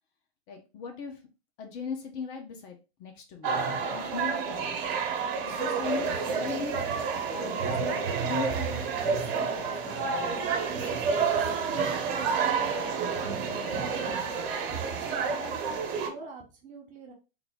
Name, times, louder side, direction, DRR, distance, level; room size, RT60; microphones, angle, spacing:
voice 1, 0.5-1.2 1.6-5.0 5.4-6.8 7.3-10.5, left 6 dB, 35° left, 3 dB, 0.8 m, -39 dB
sound 1, 3.4-16.1, right 5 dB, 55° right, 1.1 m, -29 dB
voice 2, 13.8-14.4 14.7-17.1, right 4 dB, 25° right, 1 dB, 0.9 m, -46 dB
3.8 x 2.1 x 3.5 m, 0.30 s
hypercardioid pair, 125°, 32 cm